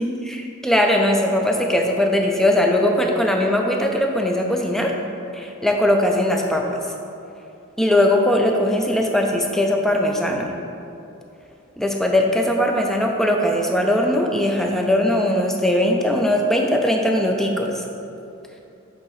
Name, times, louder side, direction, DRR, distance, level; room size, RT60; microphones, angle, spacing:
voice 1, 0.0-4.9 5.3-6.8 7.8-10.5 11.8-17.8, left 1 dB, ahead, 1 dB, 0.4 m, -20 dB
7.6 x 3.8 x 4.1 m, 2.8 s
head